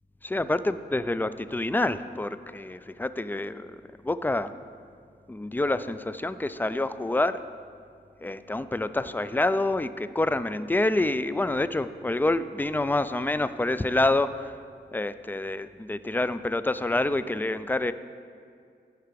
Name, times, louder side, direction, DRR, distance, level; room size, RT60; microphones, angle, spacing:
voice 1, 0.2-3.7 4.0-4.5 5.3-7.4 8.2-14.6 14.9-17.9, left 2 dB, 10° left, 14 dB, 0.3 m, -27 dB
10.0 x 4.7 x 5.1 m, 2.2 s
cardioid pair, 50°, 18 cm